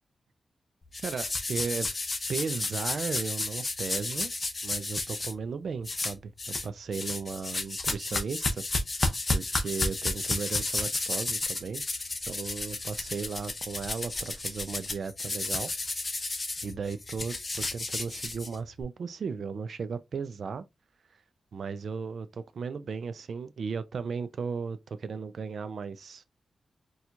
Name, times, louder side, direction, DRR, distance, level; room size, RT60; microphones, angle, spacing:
sound 1, 0.9-5.3 5.8-6.7 6.9-18.8, left 2 dB, 30° left, 0.6 m, -32 dB
voice 1, 1.0-1.9 2.3-4.3 4.6-8.6 9.3-11.8 12.3-15.7 16.6-20.6 21.5-26.2, right 5 dB, 65° right, 0.3 m, -35 dB
4.3 x 2.3 x 2.5 m
wide cardioid pair, 130°, 0 cm